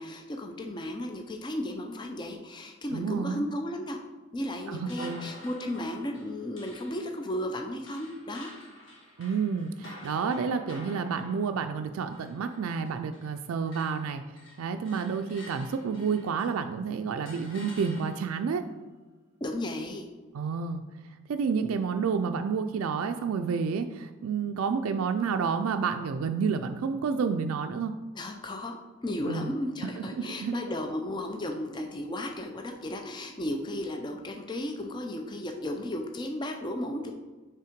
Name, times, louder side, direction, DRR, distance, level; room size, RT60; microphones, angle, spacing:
voice 1, 0.0-4.0 4.3-8.5 19.4-20.0 28.1-37.1, left 1 dB, 20° left, 3 dB, 0.4 m, -34 dB
voice 2, 2.9-3.4 4.7-5.3 9.2-14.2 14.6-18.7 20.3-20.8 21.3-27.9 29.2-29.5 30.0-30.6, right 5 dB, 80° right, 7 dB, 0.3 m, -30 dB
sound 1, 4.8-13.4 13.7-16.7 17.3-18.5, left 1 dB, 60° left, 1.4 m, -49 dB
5.5 x 3.5 x 5.0 m, 1.3 s
head